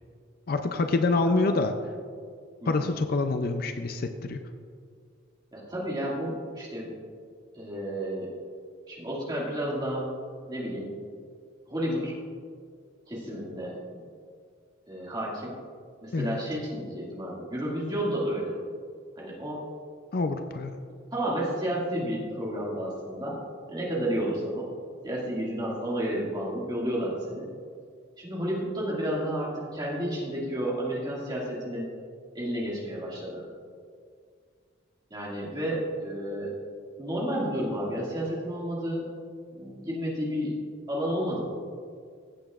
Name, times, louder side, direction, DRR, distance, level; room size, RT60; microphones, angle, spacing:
voice 1, 0.5-1.7 2.7-4.4 16.1-16.4 20.1-20.8, left 3 dB, 45° left, 7 dB, 0.4 m, -26 dB
voice 2, 5.5-6.9 7.5-8.3 8.9-10.1 10.5-10.9 11.7-12.1 13.1-14.0 14.9-15.5 16.0-18.6 19.2-19.6 21.1-23.4 23.7-24.7 25.0-27.5 28.2-31.9 32.3-33.4 35.1-36.5 37.0-39.1 39.5-40.5 40.9-41.4, equal, 20° right, -5 dB, 2.0 m, -31 dB
15.5 x 7.9 x 2.4 m, 2.1 s
head